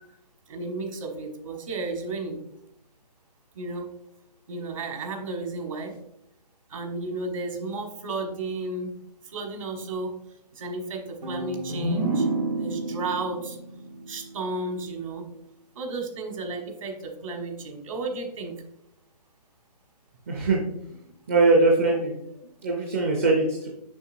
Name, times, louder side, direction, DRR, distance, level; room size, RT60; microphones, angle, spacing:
voice 1, 0.5-2.4 3.5-3.9 4.5-5.9 6.7-9.0 9.2-10.2 10.5-12.3 12.5-13.6 14.1-15.3 15.7-18.5, right 3 dB, 50° right, 3 dB, 1.3 m, -33 dB
sound 1, 11.2-14.9, right 2 dB, 75° right, 1.3 m, -30 dB
voice 2, 20.3-20.6 21.3-22.1 22.6-23.7, right 3 dB, 20° right, -1 dB, 0.5 m, -21 dB
6.9 x 5.6 x 2.6 m, 0.78 s
hypercardioid pair, 165°, 21 cm